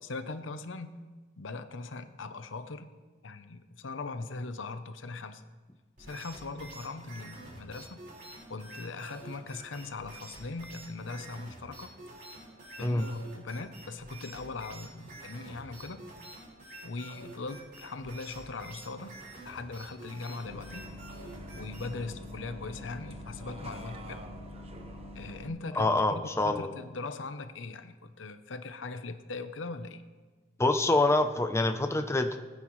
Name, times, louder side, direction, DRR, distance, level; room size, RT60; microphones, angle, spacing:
voice 1, 0.0-1.0 1.4-2.9 3.2-5.5 6.0-8.0 8.5-11.9 12.8-16.0 16.8-19.2 19.4-20.9 21.5-24.2 25.1-30.0, left 3 dB, 90° left, 10 dB, 0.8 m, -40 dB
sound 1, 6.0-22.1, right 2 dB, 50° right, 4.5 m, -48 dB
Bus, 20.5-25.5, equal, 35° right, 1.0 m, -44 dB
voice 2, 25.8-26.7 30.6-32.4, left 2 dB, 15° left, 6 dB, 0.6 m, -26 dB
20.5 x 9.5 x 3.2 m, 1.4 s
head